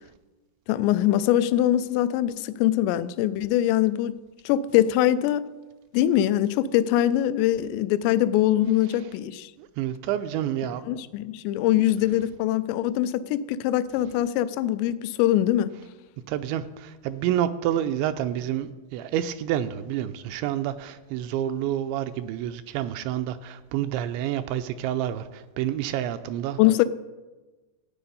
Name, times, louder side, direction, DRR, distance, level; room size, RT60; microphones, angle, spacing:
voice 1, 0.7-4.2 4.5-5.5 5.9-9.5 10.9-15.8 26.6-26.9, left 12 dB, 80° left, 13 dB, 2.6 m, -23 dB
voice 2, 9.6-10.8 11.7-11.8 16.3-26.6, right 11 dB, 85° right, 9 dB, 2.7 m, -28 dB
14.0 x 9.3 x 5.4 m, 1.2 s
omnidirectional pair, 5.3 m